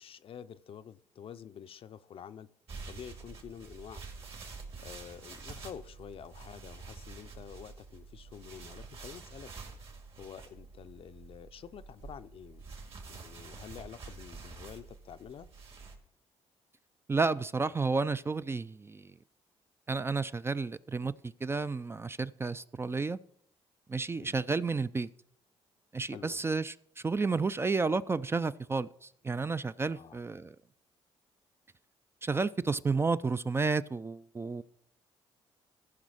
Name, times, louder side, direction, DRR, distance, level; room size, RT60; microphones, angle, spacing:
voice 1, 0.0-2.5 2.9-4.0 4.7-9.5 10.2-12.6 13.1-15.5 24.2-24.4 26.1-26.4 29.9-30.2, left 8 dB, 55° left, 0.5 m, -48 dB
sound 1, 2.7-15.9, right 4 dB, 55° right, 2.4 m, -48 dB
voice 2, 17.1-19.1 19.9-23.2 23.9-25.1 25.9-26.7 27.0-30.6 32.2-34.6, right 4 dB, 20° right, 0.3 m, -31 dB
14.5 x 5.4 x 4.9 m
cardioid pair, 80°, 11 cm